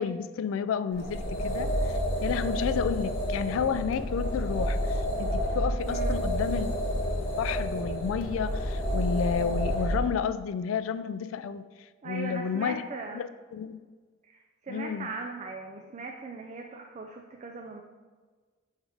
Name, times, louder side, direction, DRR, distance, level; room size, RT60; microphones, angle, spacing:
voice 1, 0.0-11.7 12.0-12.8 13.1-13.8 14.7-15.1, left 7 dB, 80° left, 13 dB, 0.3 m, -31 dB
sound 1, 0.9-10.1, equal, 50° left, 1.1 m, -29 dB
voice 2, 5.9-6.2 12.0-13.2 14.2-17.8, right 4 dB, 35° right, 3 dB, 0.4 m, -39 dB
6.3 x 3.2 x 4.8 m, 1.4 s
head